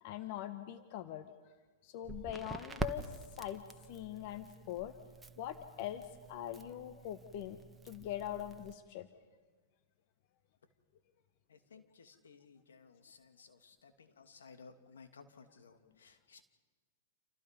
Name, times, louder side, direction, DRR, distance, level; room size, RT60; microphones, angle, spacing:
voice 1, 0.0-1.3 1.8-5.0 5.4-7.6 7.8-9.1, left 12 dB, 55° left, 10 dB, 1.2 m, -42 dB
Crackle, 2.0-8.7, right 3 dB, 10° right, 1.5 m, -46 dB
voice 2, 11.5-16.4, left 5 dB, 85° left, 6 dB, 2.7 m, -58 dB
29.5 x 28.5 x 5.4 m, 1.3 s
hypercardioid pair, 115°, 0 cm